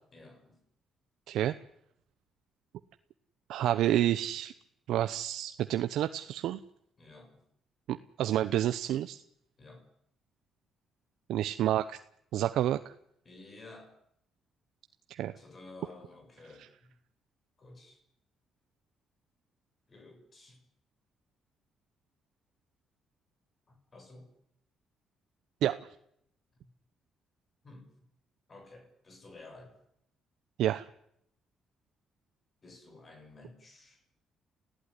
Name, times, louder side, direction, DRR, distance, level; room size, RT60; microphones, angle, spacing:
voice 1, 0.1-0.6 7.0-7.4 9.6-9.8 13.2-14.0 15.3-17.0 17.6-18.0 19.9-20.7 23.7-24.4 26.5-26.7 27.6-27.9 28.5-29.8 32.6-34.0, left 2 dB, 35° left, 6 dB, 6.7 m, -53 dB
voice 2, 3.5-4.5 4.9-6.6 7.9-9.2 11.3-12.0 12.3-12.9 15.1-15.3 25.6-25.8 30.6-30.9, right 12 dB, 80° right, 10 dB, 0.9 m, -29 dB
28.0 x 16.0 x 9.9 m, 0.75 s
cardioid pair, 90°, 0 cm